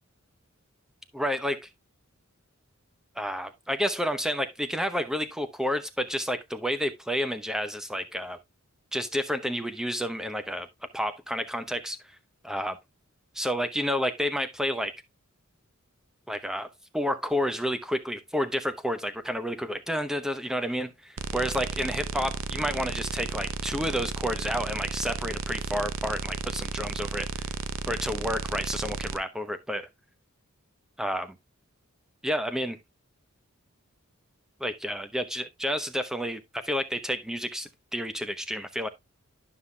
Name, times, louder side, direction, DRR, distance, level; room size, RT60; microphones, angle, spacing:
voice 1, 1.1-1.6 3.2-8.4 8.9-10.7 10.9-12.0 12.4-12.7 13.3-14.9 16.3-16.7 16.9-27.3 27.9-29.9 31.0-31.4 32.2-32.8 34.6-38.9, equal, 5° right, 0.7 m, -30 dB
sound 1, 21.2-29.2, right 4 dB, 65° right, 0.6 m, -34 dB
11.5 x 5.6 x 2.2 m
head